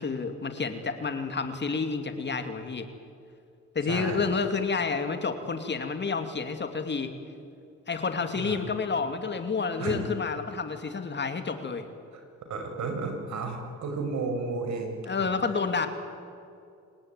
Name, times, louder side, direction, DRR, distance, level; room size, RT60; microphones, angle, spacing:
voice 1, 0.0-2.9 3.7-7.1 7.9-11.8 15.1-15.9, left 5 dB, 35° left, 8 dB, 2.5 m, -29 dB
voice 2, 3.9-4.3 8.4-8.6 9.8-10.0 12.1-12.2 12.5-15.6, right 3 dB, 70° right, 4 dB, 5.9 m, -33 dB
28.0 x 18.5 x 9.6 m, 2.5 s
cardioid pair, 90°, 30 cm